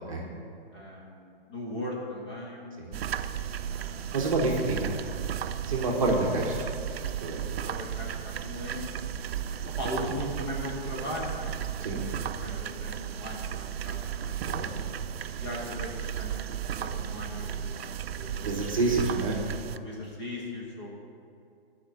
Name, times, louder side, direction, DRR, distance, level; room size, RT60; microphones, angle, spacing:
voice 1, 0.7-2.6 3.7-4.2 7.6-8.1 8.4-9.0 9.8-11.5 12.2-14.3 15.4-16.3 16.7-18.9 19.7-21.0, left 1 dB, 30° left, -4 dB, 1.6 m, -38 dB
sound 1, 2.9-19.8, right 9 dB, 80° right, 0.5 m, -35 dB
voice 2, 4.1-4.9 5.7-6.6 7.2-7.4 10.0-10.1 11.8-12.1 14.4-14.8 18.4-19.4, right 2 dB, 35° right, -2 dB, 1.0 m, -28 dB
9.9 x 4.5 x 7.6 m, 2.4 s
hypercardioid pair, 175°, 30 cm